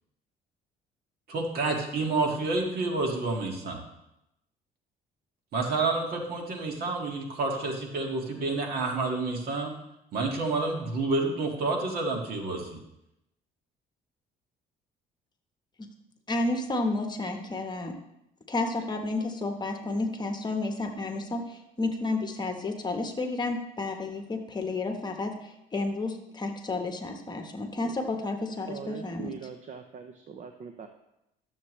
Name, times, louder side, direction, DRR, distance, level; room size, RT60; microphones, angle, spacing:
voice 1, 1.3-3.8 5.5-9.7 10.1-12.8, right 3 dB, 65° right, 1 dB, 2.0 m, -29 dB
voice 2, 16.3-17.9 18.5-29.3, left 2 dB, 25° left, 4 dB, 1.2 m, -31 dB
voice 3, 28.7-30.9, right 6 dB, 45° right, 6 dB, 0.7 m, -42 dB
12.5 x 7.3 x 3.2 m, 0.85 s
cardioid pair, 110°, 17 cm